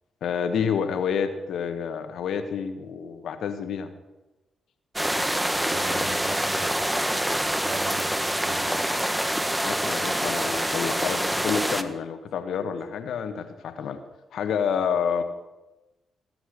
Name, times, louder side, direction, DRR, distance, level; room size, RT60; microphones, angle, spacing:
voice 1, 0.2-3.9 9.6-14.0 14.3-15.2, left 7 dB, 70° left, 8 dB, 1.3 m, -28 dB
sound 1, 5.0-11.8, right 1 dB, 10° right, 1.3 m, -26 dB
voice 2, 5.7-7.2 7.6-8.9, right 3 dB, 60° right, 4 dB, 2.8 m, -40 dB
19.0 x 7.9 x 6.7 m, 1.0 s
hypercardioid pair, 45°, 0 cm